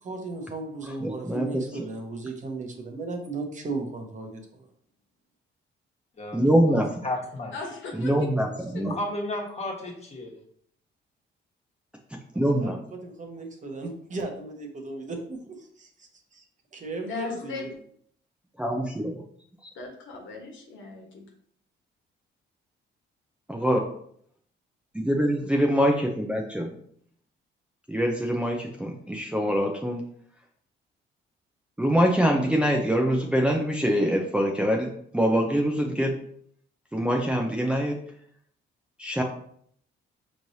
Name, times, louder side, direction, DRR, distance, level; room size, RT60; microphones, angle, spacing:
voice 1, 0.0-4.7 12.3-12.7 13.0-16.4 16.7-17.7, right 3 dB, 40° right, 3 dB, 0.9 m, -36 dB
voice 2, 1.0-1.9 6.3-6.9 7.9-8.5 8.7-8.9 12.4-12.8 18.6-19.2 23.5-23.8 24.9-26.7 27.9-30.0 31.8-36.2 36.9-38.0 39.0-39.2, equal, 5° right, 0 dB, 0.5 m, -24 dB
voice 3, 6.2-7.5 8.8-10.3, left 1 dB, 30° left, -1 dB, 1.3 m, -33 dB
voice 4, 7.5-8.1 17.1-17.6 19.7-21.2, left 4 dB, 75° left, 0 dB, 1.3 m, -37 dB
5.2 x 3.1 x 2.7 m, 0.65 s
cardioid pair, 90°, 20 cm